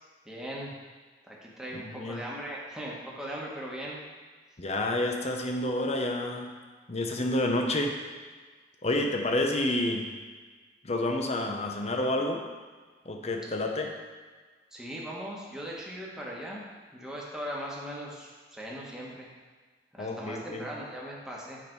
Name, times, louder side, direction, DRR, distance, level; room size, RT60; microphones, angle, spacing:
voice 1, 0.2-0.7 1.2-4.0 14.7-16.6 16.9-19.3 19.9-21.6, equal, 5° right, -5 dB, 1.4 m, -39 dB
voice 2, 1.7-2.2 4.6-6.5 6.9-8.0 8.8-10.1 10.8-12.4 13.0-13.9 20.0-20.7, left 1 dB, 40° left, 3 dB, 0.8 m, -29 dB
7.7 x 5.3 x 4.6 m, 1.4 s
head